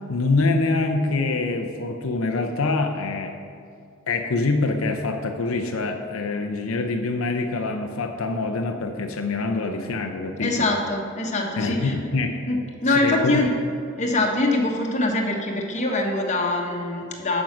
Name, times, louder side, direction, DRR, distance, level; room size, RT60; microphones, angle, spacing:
voice 1, 0.1-3.4 4.1-10.7 11.6-12.5 12.9-13.4, left 3 dB, 85° left, 5 dB, 0.6 m, -25 dB
voice 2, 10.4-11.9 12.5-13.5 13.9-17.4, left 2 dB, 35° left, 0 dB, 1.2 m, -23 dB
9.0 x 6.3 x 6.0 m, 2.4 s
head